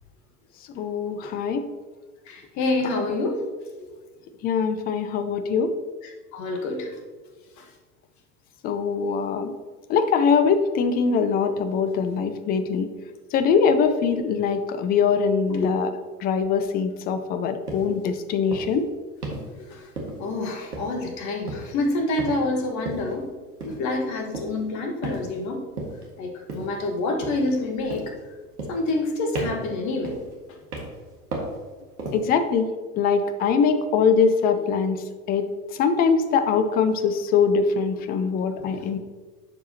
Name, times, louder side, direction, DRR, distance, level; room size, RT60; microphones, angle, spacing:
voice 1, 0.8-1.6 2.8-3.0 4.4-5.7 8.6-9.5 9.9-12.9 13.3-15.9 16.2-18.9 32.1-32.7 33.0-35.0 35.3-35.5 35.8-39.0, left 6 dB, 20° left, 10 dB, 0.4 m, -22 dB
voice 2, 2.3-3.4 3.8-3.9 6.3-6.9 7.6-7.7 15.5-15.7 19.7-19.9 20.2-23.3 23.6-25.7 26.2-28.1 28.7-30.2 38.1-38.3 38.7-39.0, left 2 dB, 40° left, 3 dB, 1.5 m, -27 dB
sound 1, 17.7-17.9 18.5-18.8 19.2-19.5 20.0-20.4 20.7-21.1 21.5-21.8 22.2-22.5 22.8-23.1 23.6-23.9 24.3-24.6 25.0-25.4 25.8-26.1 26.5-26.8 27.2-27.6 27.9-28.2 28.6-29.1 29.3-29.7 30.0-30.3 30.7-31.0 31.3-31.6 32.0-32.3, right 2 dB, 80° right, 1.7 m, -34 dB
11.0 x 4.8 x 2.8 m, 1.4 s
figure-of-eight pair, 80°, 45 cm